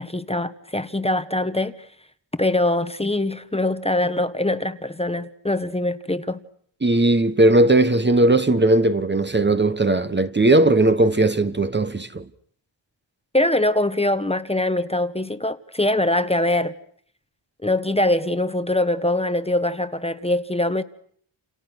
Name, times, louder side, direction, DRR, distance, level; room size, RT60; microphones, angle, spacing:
voice 1, 0.0-1.7 2.4-6.4 13.3-16.8 17.6-20.8, left 1 dB, 10° left, 1.2 m, -23 dB
voice 2, 6.8-12.3, right 2 dB, 20° right, 1.2 m, -18 dB
29.0 x 29.0 x 6.4 m
wide cardioid pair, 105°, 48 cm